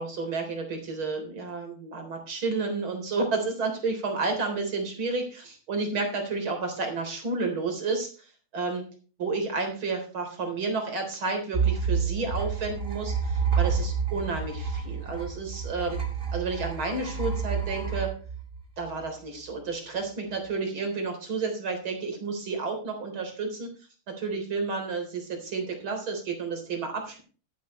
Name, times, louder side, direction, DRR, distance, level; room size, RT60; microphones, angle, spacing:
voice 1, 0.0-8.3 8.5-8.8 9.2-16.0 16.3-18.1 18.8-23.7 24.1-27.2, right 3 dB, 70° right, 4 dB, 4.6 m, -31 dB
sound 1, 11.5-19.1, right 6 dB, 25° right, 2.7 m, -29 dB
12.5 x 12.5 x 3.2 m, 0.37 s
omnidirectional pair, 2.3 m